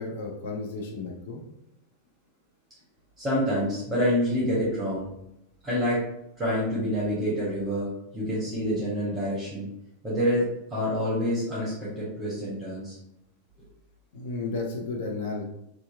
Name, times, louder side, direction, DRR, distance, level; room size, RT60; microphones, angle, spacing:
voice 1, 0.0-1.4 14.1-15.4, left 3 dB, 55° left, 0 dB, 0.4 m, -33 dB
voice 2, 3.2-5.1 5.6-6.0 6.4-9.7 10.0-13.0 13.6-13.7, equal, 15° right, -7 dB, 0.9 m, -27 dB
2.7 x 2.3 x 2.3 m, 0.81 s
figure-of-eight pair, 90°, 0 cm